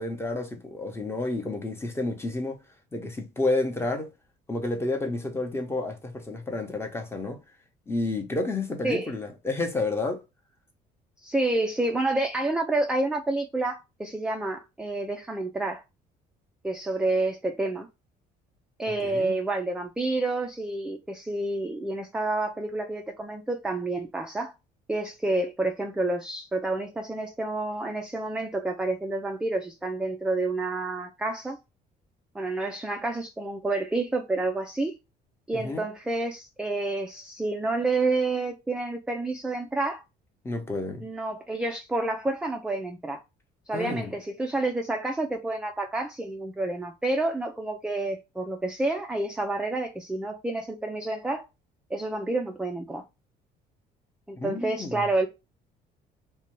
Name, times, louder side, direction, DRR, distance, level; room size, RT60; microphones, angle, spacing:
voice 1, 0.0-2.6 2.9-4.1 4.5-7.4 7.9-10.2 19.0-19.4 35.6-35.8 40.4-41.0 43.7-44.1 54.4-55.1, left 2 dB, 15° left, 0.7 m, -30 dB
voice 2, 11.2-15.8 16.6-17.9 18.8-24.5 24.9-31.6 32.3-34.9 35.5-40.0 41.0-43.2 43.7-51.5 51.9-53.0 54.3-55.3, right 2 dB, 5° right, 0.3 m, -29 dB
2.6 x 2.2 x 3.0 m
cardioid pair, 110°, 17 cm